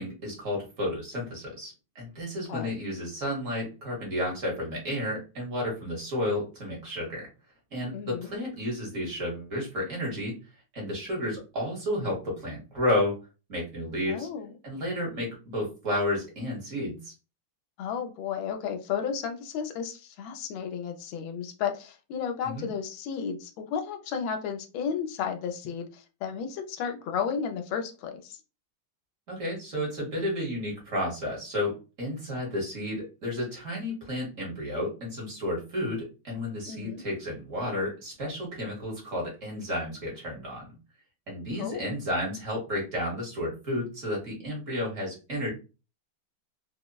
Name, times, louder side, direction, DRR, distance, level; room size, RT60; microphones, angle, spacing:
voice 1, 0.0-7.3 7.7-10.3 10.7-13.2 13.5-14.3 14.6-17.1 22.4-22.7 29.3-40.7 41.3-45.5, left 1 dB, 45° right, -2 dB, 1.2 m, -32 dB
voice 2, 7.9-8.3 14.1-14.5 17.8-28.4 36.7-37.0 41.6-41.9, left 7 dB, 80° left, 5 dB, 1.3 m, -33 dB
3.8 x 2.0 x 2.2 m, 0.31 s
omnidirectional pair, 2.2 m